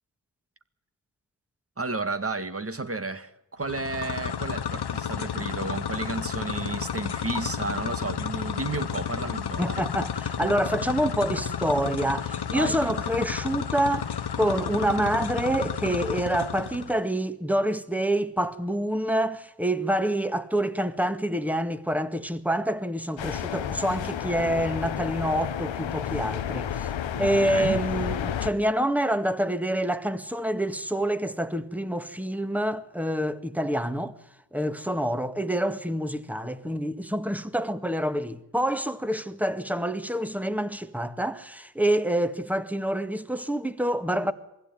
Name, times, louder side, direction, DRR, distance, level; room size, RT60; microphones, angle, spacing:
voice 1, 1.8-9.8 12.5-12.8 27.1-27.8, right 3 dB, 30° right, 1.9 m, -32 dB
sound 1, 3.6-17.0, left 8 dB, 65° left, 1.2 m, -32 dB
voice 2, 9.6-26.9 27.2-34.1 34.5-44.3, right 1 dB, 5° right, 1.8 m, -27 dB
sound 2, 23.2-28.5, left 9 dB, 90° left, 1.0 m, -31 dB
22.0 x 16.0 x 9.3 m
cardioid pair, 40°, 44 cm